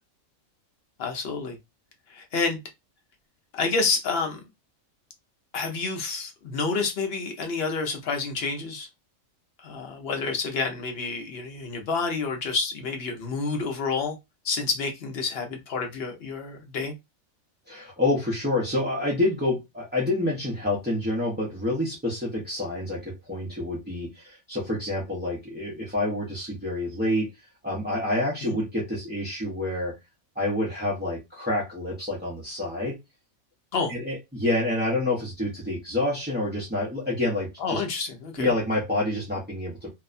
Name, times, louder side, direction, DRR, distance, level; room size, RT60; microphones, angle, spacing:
voice 1, 1.0-1.6 2.1-2.6 3.5-4.4 5.5-8.9 9.6-14.2 14.4-16.9 28.4-28.6 33.7-33.9 37.6-38.5, left 4 dB, 55° left, 0.8 m, -29 dB
voice 2, 17.7-27.3 27.6-29.9 30.4-33.0 33.9-37.8 38.4-39.9, left 2 dB, 10° right, 0.5 m, -28 dB
2.6 x 2.2 x 2.4 m
omnidirectional pair, 1.4 m